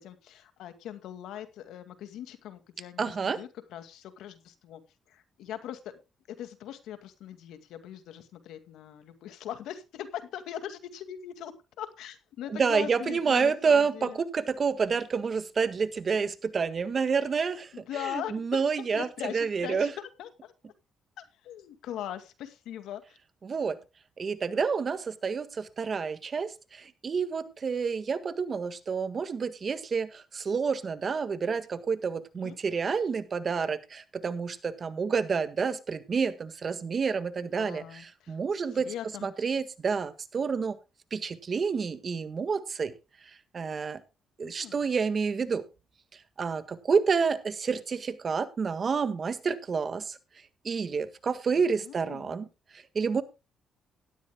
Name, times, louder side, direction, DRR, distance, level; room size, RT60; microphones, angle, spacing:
voice 1, 0.0-4.8 5.1-5.9 6.3-14.2 17.7-18.7 18.9-20.5 21.2-23.2 32.4-32.6 37.5-38.4 38.7-39.3 44.4-44.9 51.5-52.5, left 10 dB, 85° left, 9 dB, 2.1 m, -41 dB
voice 2, 3.0-3.4 12.5-17.8 18.1-19.9 23.4-23.8 24.2-38.9 39.2-40.8 41.1-42.9 43.5-44.0 44.4-45.6 46.4-50.2 50.6-52.5 52.7-53.2, right 5 dB, 45° right, 12 dB, 1.6 m, -29 dB
17.5 x 12.5 x 2.3 m, 0.28 s
cardioid pair, 90°, 0 cm